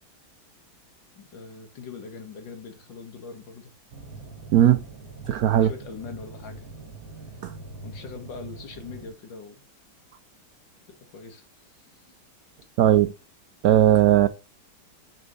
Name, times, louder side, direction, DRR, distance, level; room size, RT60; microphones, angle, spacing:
voice 1, 1.2-3.7 5.5-6.7 7.3-7.4 7.8-9.6 11.1-12.0, left 5 dB, 70° left, 2.1 m, -42 dB
sound 1, 3.9-9.1, right 3 dB, 50° right, 1.6 m, -43 dB
voice 2, 4.5-4.8 5.2-5.7 7.4-7.5 12.8-13.1 13.6-14.3, right 11 dB, 90° right, 0.8 m, -18 dB
6.6 x 4.4 x 5.3 m
omnidirectional pair, 2.2 m